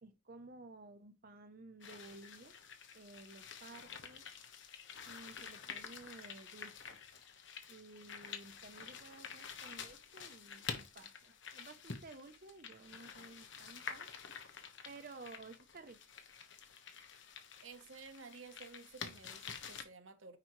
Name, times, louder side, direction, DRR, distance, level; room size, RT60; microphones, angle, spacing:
voice 1, 0.0-2.5 2.9-4.3 5.1-7.0 7.7-14.1 14.8-16.0, right 3 dB, 50° right, 0.7 m, -54 dB
sound 1, 1.8-19.8, left 6 dB, 70° left, 1.2 m, -49 dB
voice 2, 17.6-20.4, right 4 dB, 85° right, 1.0 m, -53 dB
9.8 x 4.9 x 3.1 m
head